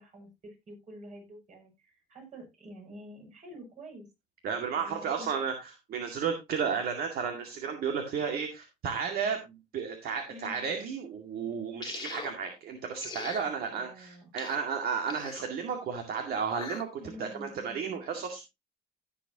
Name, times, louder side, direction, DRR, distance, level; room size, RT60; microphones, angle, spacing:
voice 1, 0.0-4.1 4.8-5.3 10.3-10.6 13.7-14.3 17.0-17.8, equal, 45° right, 1 dB, 7.2 m, -48 dB
voice 2, 4.4-18.5, right 6 dB, 65° right, 5 dB, 2.2 m, -33 dB
sound 1, 11.8-12.3 13.0-13.5 14.4-14.6 15.1-15.5 16.4-16.8, left 5 dB, 25° left, 1.9 m, -41 dB
16.0 x 7.4 x 2.9 m, 0.23 s
cardioid pair, 110°, 17 cm